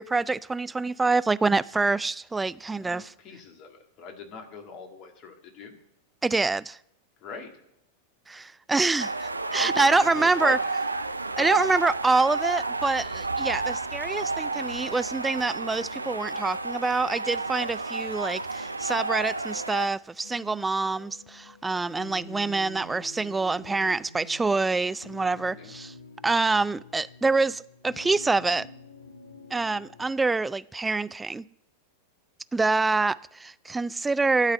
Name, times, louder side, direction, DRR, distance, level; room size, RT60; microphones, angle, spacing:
voice 1, 0.0-3.1 6.2-6.8 8.3-10.6 11.4-25.9 26.2-28.7 29.5-31.4 32.5-34.5, right 3 dB, 10° right, 0.3 m, -26 dB
voice 2, 2.8-5.8 7.2-7.5 9.6-10.7 11.4-11.6 25.6-25.8, left 4 dB, 40° left, 1.8 m, -41 dB
sound 1, 9.0-19.9, right 3 dB, 80° right, 0.4 m, -31 dB
sound 2, 20.2-30.1, left 2 dB, 70° left, 0.9 m, -48 dB
12.0 x 4.0 x 7.8 m
figure-of-eight pair, 90°, 0 cm